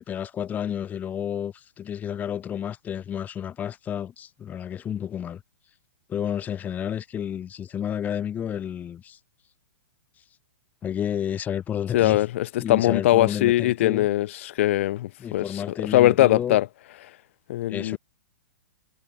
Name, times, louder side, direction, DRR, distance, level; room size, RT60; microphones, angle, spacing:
voice 1, 0.0-5.4 6.1-9.2 10.8-12.2 12.6-14.1 15.2-16.6 17.7-18.0, left 9 dB, 20° left, 0.7 m, -31 dB
voice 2, 11.9-15.6 15.9-16.7 17.5-18.0, left 15 dB, 50° left, 0.5 m, -21 dB
figure-of-eight pair, 110°, 9 cm